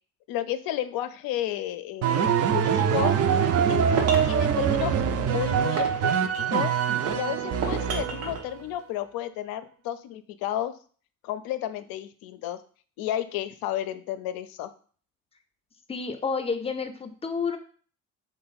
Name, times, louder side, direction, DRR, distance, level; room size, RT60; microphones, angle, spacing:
voice 1, 0.3-3.2 3.7-3.9 4.3-6.1 6.5-6.8 7.1-10.7 11.2-12.6 13.0-14.7, left 12 dB, 65° left, 11 dB, 0.5 m, -32 dB
sound 1, 2.0-8.5, right 8 dB, 40° right, 0.4 m, -24 dB
sound 2, 3.4-4.4 5.1-6.6 7.1-8.4, right 5 dB, 85° right, 0.6 m, -32 dB
voice 2, 15.9-17.6, left 5 dB, 15° left, 8 dB, 0.5 m, -30 dB
3.0 x 2.0 x 4.1 m, 0.43 s
hypercardioid pair, 50°, 39 cm